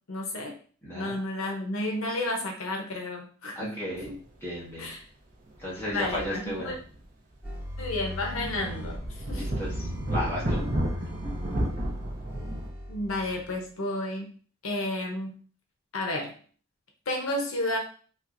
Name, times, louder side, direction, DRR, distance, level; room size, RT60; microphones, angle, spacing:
voice 1, 0.1-0.6 0.9-3.7 4.1-4.2 4.8-5.0 5.9-6.8 7.8-9.5 12.9-14.3 14.6-15.4 15.9-16.3 17.1-17.8, left 1 dB, 75° left, 1 dB, 0.8 m, -31 dB
voice 2, 0.8-1.2 3.5-4.1 4.4-4.9 5.6-6.7 9.3-9.7 10.1-10.6, left 1 dB, 10° left, -6 dB, 1.3 m, -34 dB
sound 1, 4.0-4.2 4.5-4.6 5.5-7.0 7.3-7.4 8.0-12.7, right 1 dB, 40° right, 0.8 m, -33 dB
sound 2, 7.4-13.7, left 1 dB, 10° right, 0.9 m, -38 dB
4.4 x 2.9 x 2.5 m, 0.42 s
head